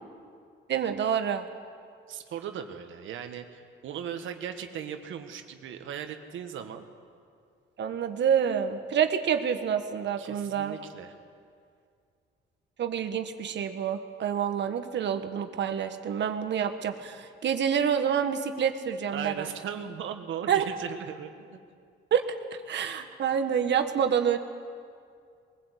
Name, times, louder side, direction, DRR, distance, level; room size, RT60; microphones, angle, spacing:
voice 1, 0.7-1.4 7.8-10.8 12.8-19.5 20.5-20.6 22.1-22.3 22.7-24.4, right 8 dB, 65° right, 8 dB, 1.5 m, -27 dB
voice 2, 2.1-6.8 10.2-11.2 19.1-21.6, right 8 dB, 80° right, 6 dB, 1.6 m, -38 dB
22.5 x 16.0 x 8.3 m, 2.3 s
cardioid pair, 90°, 20 cm